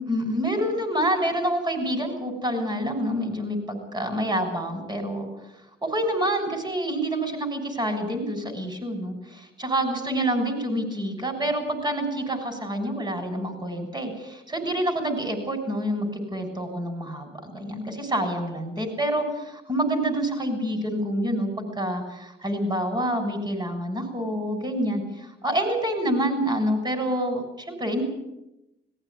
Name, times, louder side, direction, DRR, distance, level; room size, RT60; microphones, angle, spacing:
voice 1, 0.0-5.3 5.8-28.0, right 1 dB, 20° right, 7 dB, 6.8 m, -27 dB
19.5 x 16.0 x 9.7 m, 0.91 s
cardioid pair, 90°, 20 cm